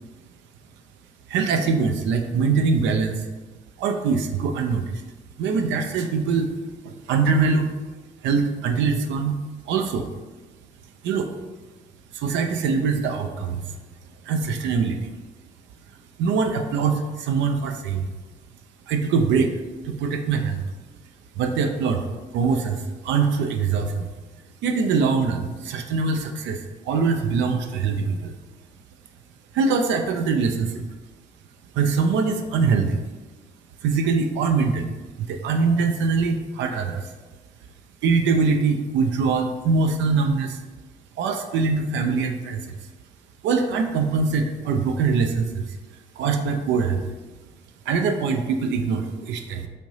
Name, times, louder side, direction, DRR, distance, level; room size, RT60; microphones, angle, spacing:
voice 1, 1.3-3.3 3.8-5.0 5.4-6.5 6.8-7.7 8.2-9.4 9.7-10.1 11.0-11.3 12.1-13.6 14.2-15.1 16.2-18.1 18.9-19.5 19.8-20.6 21.4-22.1 22.3-24.1 24.6-28.3 29.5-30.8 31.7-33.0 33.8-37.1 38.0-40.6 41.2-42.8 43.4-45.8 46.2-47.0 47.9-49.7, right 5 dB, 65° right, 5 dB, 0.4 m, -23 dB
3.2 x 2.6 x 4.0 m, 1.2 s
hypercardioid pair, 45°, 20 cm